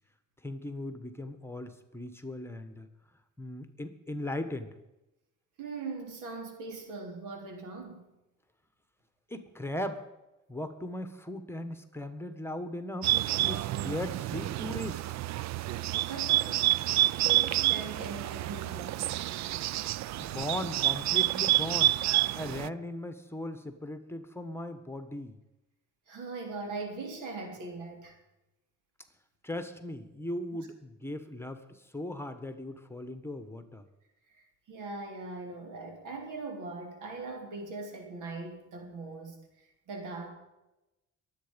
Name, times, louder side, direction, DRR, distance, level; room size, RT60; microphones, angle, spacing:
voice 1, 0.4-2.9 3.4-4.8 9.3-10.0 10.5-15.0 20.1-22.0 22.3-25.4 29.4-33.8, left 1 dB, 10° left, 9 dB, 1.4 m, -38 dB
voice 2, 5.6-8.1 15.9-19.0 26.1-28.2 34.3-40.3, right 3 dB, 90° right, 3 dB, 3.4 m, -41 dB
Bird, 13.0-22.7, right 14 dB, 65° right, 0.4 m, -28 dB
22.0 x 8.3 x 5.3 m, 0.96 s
cardioid pair, 90°, 30 cm